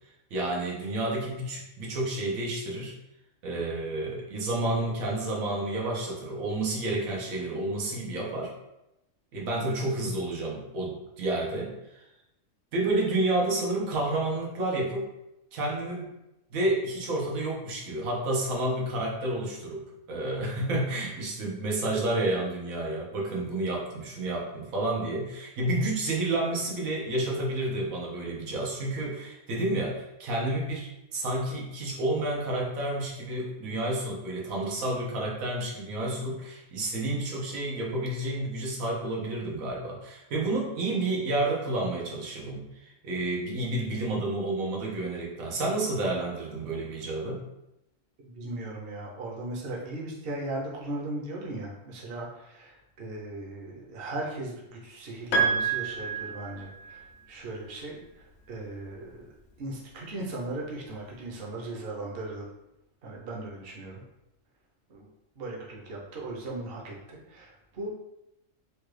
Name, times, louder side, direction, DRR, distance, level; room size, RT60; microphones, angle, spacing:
voice 1, 0.3-2.9 3.4-8.5 9.3-12.0 12.7-15.1 15.5-16.1 16.5-47.4, right 2 dB, 90° right, -2 dB, 1.2 m, -30 dB
voice 2, 48.2-59.3 59.6-62.5 63.0-64.0 64.9-65.1 65.4-67.9, right 2 dB, 55° right, -3 dB, 0.8 m, -38 dB
Piano, 55.3-57.0, right 5 dB, 80° left, 1.0 m, -28 dB
3.2 x 2.3 x 3.2 m, 0.90 s
omnidirectional pair, 1.4 m